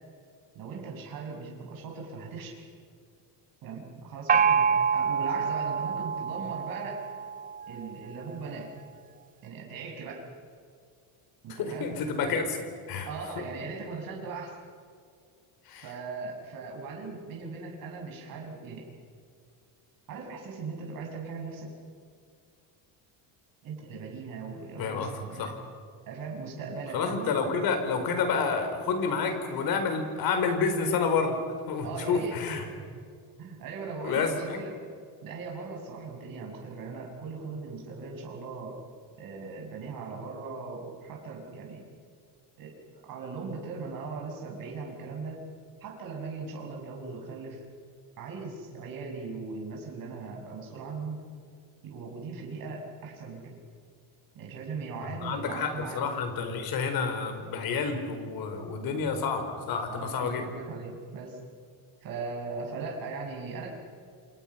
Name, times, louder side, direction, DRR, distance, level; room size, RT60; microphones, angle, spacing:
voice 1, 0.5-2.6 3.6-7.0 7.7-8.7 9.4-10.3 11.4-12.0 13.1-14.6 15.8-18.9 20.1-21.7 23.6-25.5 26.1-27.4 31.8-32.4 32.7-33.0 33.4-34.7 35.2-38.8 39.2-41.8 42.6-45.4 45.8-47.6 48.2-51.2 51.8-53.6 54.3-56.1 59.9-61.4 62.0-63.7, right 4 dB, 50° right, 0 dB, 6.5 m, -39 dB
Gong, 4.3-7.8, right 7 dB, 20° right, 0.5 m, -26 dB
voice 2, 11.5-12.6 12.9-13.1 13.4-13.5 15.7-15.9 24.8-25.1 25.4-25.6 26.9-31.4 31.7-32.6 34.0-34.6 55.2-60.4, left 5 dB, 55° left, 6 dB, 4.6 m, -29 dB
28.5 x 27.5 x 5.8 m, 2.3 s
cardioid pair, 175°, 43 cm